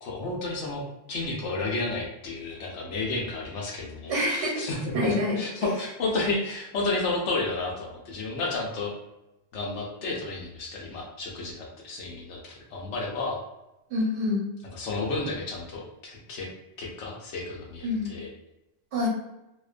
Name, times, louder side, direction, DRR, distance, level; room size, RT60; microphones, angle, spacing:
voice 1, 0.0-8.9 9.5-13.4 14.7-16.5 16.8-18.3, left 3 dB, 80° left, -2 dB, 0.9 m, -32 dB
voice 2, 4.1-4.6 4.9-5.4 13.9-14.4 17.8-18.1 18.9-19.1, left 1 dB, 75° right, -3 dB, 1.1 m, -26 dB
2.5 x 2.1 x 2.4 m, 0.93 s
omnidirectional pair, 1.2 m